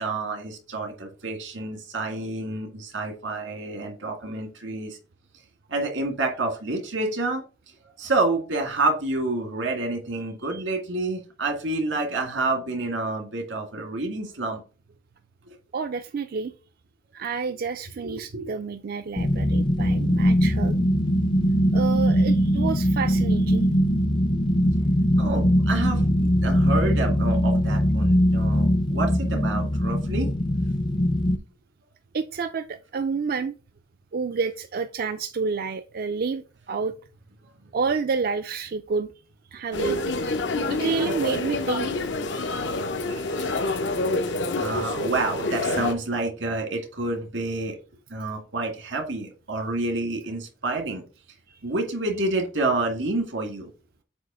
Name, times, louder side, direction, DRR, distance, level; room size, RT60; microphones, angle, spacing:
voice 1, 0.0-5.0 5.7-7.4 8.0-14.6 15.5-15.6 18.0-18.5 25.2-30.3 43.0-43.8 44.6-47.8 48.1-51.0 51.6-53.7, right 2 dB, 90° right, 3 dB, 2.0 m, -28 dB
voice 2, 15.7-16.5 17.1-20.8 21.7-23.7 32.1-33.5 34.1-36.9 37.7-39.1 39.5-40.0 40.7-41.9, right 5 dB, 50° right, 9 dB, 0.4 m, -29 dB
sound 1, 19.2-31.4, equal, 25° left, 0.5 m, -21 dB
sound 2, 39.7-45.9, left 2 dB, 70° left, 0.8 m, -27 dB
7.8 x 3.0 x 5.5 m, 0.35 s
head